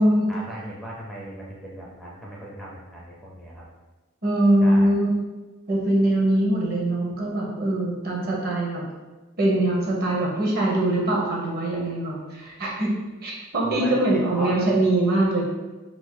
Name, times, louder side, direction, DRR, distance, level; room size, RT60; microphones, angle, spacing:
voice 1, 0.3-3.6 4.6-5.0 13.6-14.7, right 1 dB, ahead, -5 dB, 0.4 m, -37 dB
voice 2, 4.2-5.2 5.7-8.8 9.4-12.9 13.2-15.4, right 1 dB, 45° right, -3 dB, 0.8 m, -22 dB
2.8 x 2.6 x 3.7 m, 1.2 s
head